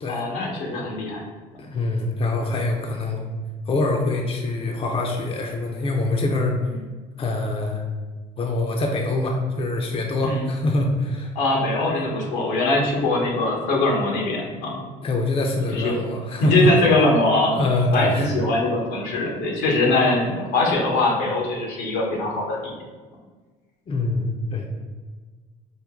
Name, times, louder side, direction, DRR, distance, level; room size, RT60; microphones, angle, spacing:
voice 1, 0.1-1.2 10.2-10.5 11.3-14.8 15.7-16.0 16.4-17.6 17.9-22.7, left 2 dB, 80° left, -1 dB, 1.1 m, -22 dB
voice 2, 1.6-3.2 3.7-6.6 7.2-7.8 8.4-11.3 15.0-16.7 17.5-18.3 23.9-24.7, left 2 dB, 35° left, 1 dB, 0.6 m, -24 dB
5.3 x 2.1 x 3.6 m, 1.4 s
supercardioid pair, 85°, 17 cm